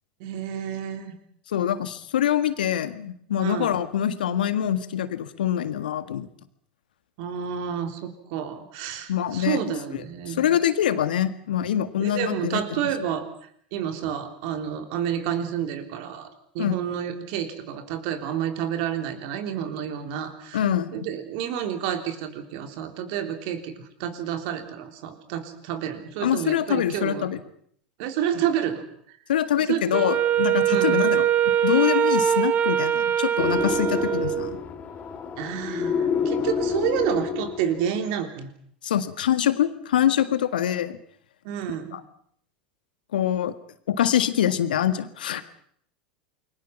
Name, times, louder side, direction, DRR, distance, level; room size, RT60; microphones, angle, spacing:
voice 1, 0.2-1.1 3.4-3.7 7.2-10.5 12.0-13.3 13.7-16.3 16.5-20.6 20.9-27.3 28.0-28.8 29.7-29.8 30.7-31.0 35.4-38.5 41.4-42.0, right 9 dB, 55° right, 7 dB, 3.6 m, -29 dB
voice 2, 1.5-6.3 9.1-9.6 10.3-12.9 16.6-16.8 20.5-21.0 26.2-27.4 29.3-34.6 38.8-41.0 41.9-42.0 43.1-43.5 43.9-45.4, left 10 dB, 75° left, 11 dB, 1.7 m, -24 dB
Wind instrument woodwind instrument, 29.9-34.6, right 9 dB, 35° right, 1.4 m, -22 dB
sound 1, 33.4-38.0, left 6 dB, 30° left, 3.4 m, -28 dB
28.5 x 22.5 x 5.9 m, 0.64 s
figure-of-eight pair, 85°, 5 cm